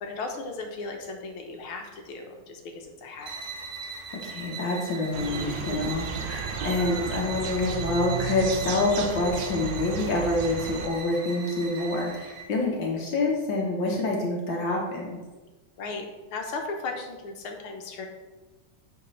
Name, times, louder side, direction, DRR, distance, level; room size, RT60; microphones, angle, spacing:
voice 1, 0.0-3.5 15.8-18.1, left 3 dB, 80° left, 3 dB, 1.9 m, -36 dB
sound 1, 3.2-12.6, right 5 dB, 90° right, 2.0 m, -40 dB
voice 2, 4.1-15.2, left 2 dB, 65° left, -2 dB, 1.9 m, -27 dB
sound 2, 5.1-10.9, right 6 dB, 70° right, 1.3 m, -33 dB
9.3 x 6.5 x 3.3 m, 1.2 s
omnidirectional pair, 2.3 m